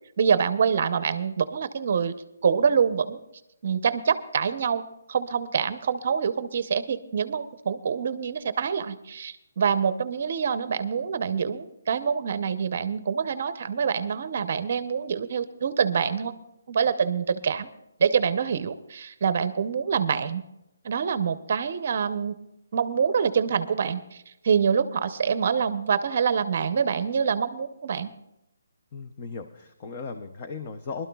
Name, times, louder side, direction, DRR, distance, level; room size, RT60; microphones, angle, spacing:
voice 1, 0.2-2.1 2.4-3.2 3.6-4.8 5.1-16.3 16.7-17.7 18.0-20.4 20.8-22.4 22.7-28.1, right 6 dB, 35° right, 13 dB, 0.7 m, -25 dB
voice 2, 28.9-31.1, left 4 dB, 20° left, 6 dB, 0.5 m, -37 dB
23.0 x 12.0 x 2.3 m, 0.85 s
hypercardioid pair, 175°, 0 cm